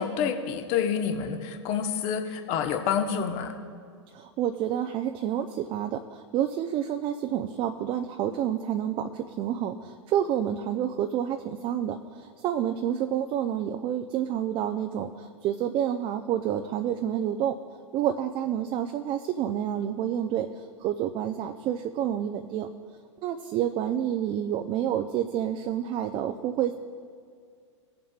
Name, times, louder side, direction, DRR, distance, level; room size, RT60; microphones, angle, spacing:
voice 1, 0.0-3.5, left 7 dB, 45° left, 5 dB, 1.2 m, -28 dB
voice 2, 4.1-17.6 17.9-22.7 23.2-26.7, right 10 dB, 35° right, 6 dB, 0.5 m, -29 dB
20.0 x 7.4 x 2.4 m, 2.1 s
hypercardioid pair, 100°, 16 cm